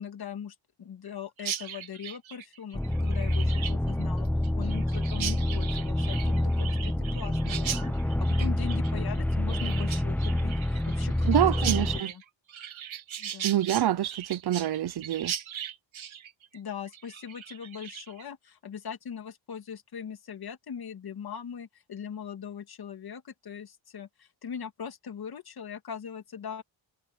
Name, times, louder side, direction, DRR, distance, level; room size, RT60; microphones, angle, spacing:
voice 1, 0.0-4.3 4.5-12.2 13.2-13.6 16.5-26.6, left 7 dB, 50° left, 2.1 m, -40 dB
Chirp tweet, 1.4-18.3, right 10 dB, 85° right, 2.0 m, -38 dB
sound 1, 2.7-12.0, left 1 dB, 5° left, 0.9 m, -27 dB
voice 2, 11.3-12.1 13.4-15.3, right 12 dB, 55° right, 0.9 m, -26 dB
wide cardioid pair, 170°, 46 cm